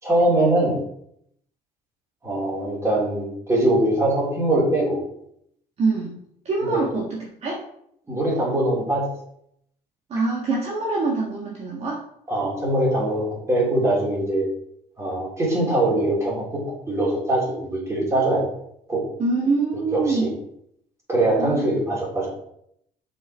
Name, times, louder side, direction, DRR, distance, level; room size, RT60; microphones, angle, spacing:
voice 1, 0.0-0.7 2.2-5.0 6.6-6.8 8.1-9.1 12.3-14.4 15.0-18.4 18.9-19.0 19.9-20.3 21.1-22.3, right 1 dB, 20° right, -4 dB, 3.5 m, -22 dB
voice 2, 5.8-6.2 6.4-7.6 10.1-12.0 19.2-20.3 21.4-21.7, right 3 dB, 45° right, -3 dB, 1.6 m, -24 dB
6.8 x 5.8 x 4.5 m, 0.73 s
cardioid pair, 135°, 15 cm